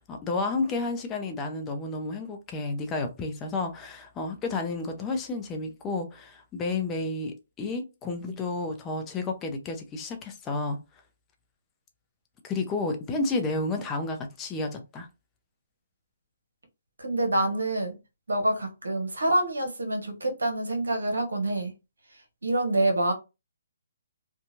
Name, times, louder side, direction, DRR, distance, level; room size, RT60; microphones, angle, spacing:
voice 1, 0.0-10.8 12.4-15.1, left 3 dB, 20° left, 0.5 m, -31 dB
voice 2, 17.0-18.0 18.3-21.7 22.4-23.1, right 1 dB, 85° right, 0.9 m, -26 dB
2.8 x 2.2 x 2.6 m
hypercardioid pair, 145°, 0 cm